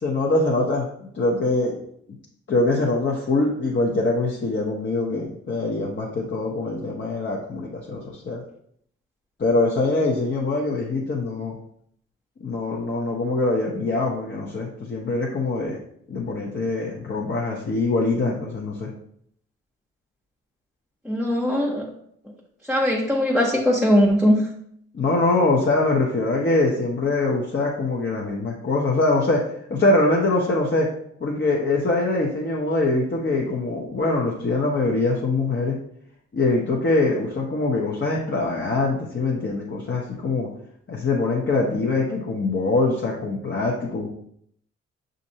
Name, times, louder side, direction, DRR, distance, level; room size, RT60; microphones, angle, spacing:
voice 1, 0.0-1.8 2.5-8.4 9.4-11.5 12.4-15.8 16.1-18.9 24.9-30.9 31.2-35.8 36.3-40.5 40.9-44.1, left 2 dB, 40° left, -3 dB, 0.9 m, -23 dB
voice 2, 21.0-21.9 22.7-24.5, equal, ahead, -4 dB, 0.8 m, -20 dB
6.0 x 2.6 x 2.8 m, 0.68 s
hypercardioid pair, 40°, 30 cm